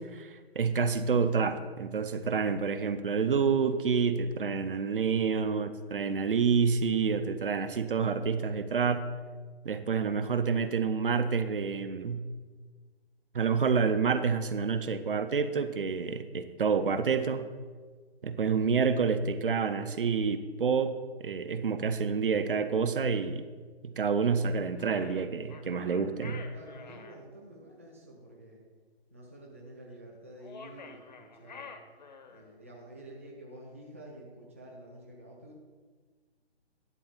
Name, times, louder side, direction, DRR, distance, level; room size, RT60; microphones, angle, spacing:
voice 1, 0.0-9.1 9.6-12.2 13.3-17.5 18.2-23.4 23.8-26.4, right 5 dB, 55° right, 11 dB, 0.7 m, -28 dB
sound 1, 24.8-27.2 30.4-32.5, left 5 dB, 45° left, 0.8 m, -48 dB
voice 2, 26.5-28.6 29.1-31.7 32.3-35.6, right 1 dB, 15° right, -4 dB, 0.5 m, -49 dB
10.5 x 4.1 x 7.1 m, 1.5 s
hypercardioid pair, 170°, 33 cm